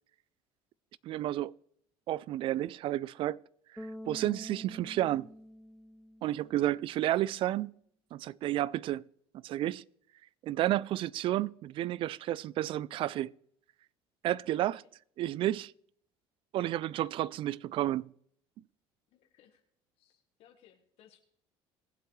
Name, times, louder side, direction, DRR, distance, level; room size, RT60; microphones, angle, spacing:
voice 1, 1.0-1.5 2.1-3.4 3.7-5.3 6.2-7.7 8.1-9.0 9.3-9.8 10.4-13.3 14.2-14.8 15.2-15.7 16.5-18.1, right 14 dB, 55° right, 0.4 m, -31 dB
Bass guitar, 3.8-6.9, equal, ahead, 0.5 m, -47 dB
voice 2, 14.5-14.8 15.5-15.6 19.1-19.6 20.0-21.2, left 10 dB, 65° left, 1.5 m, -63 dB
20.0 x 7.8 x 3.2 m
cardioid pair, 110°, 11 cm